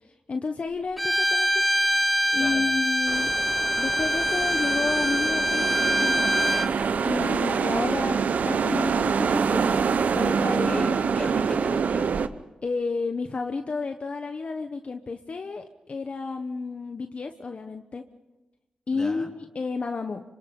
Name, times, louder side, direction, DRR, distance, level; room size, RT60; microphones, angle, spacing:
voice 1, 0.0-1.7 2.3-3.3 3.8-6.2 7.0-9.8 10.1-11.0 12.6-18.0 18.9-20.2, left 4 dB, 55° left, 6 dB, 1.2 m, -31 dB
Bowed string instrument, 1.0-6.7, equal, ahead, 1.0 m, -24 dB
sound 1, 3.1-12.3, right 6 dB, 80° right, 0.9 m, -26 dB
voice 2, 10.5-12.2 18.9-19.3, left 1 dB, 20° left, 3 dB, 3.5 m, -37 dB
26.0 x 25.0 x 5.5 m, 1.0 s
cardioid pair, 65°, 3 cm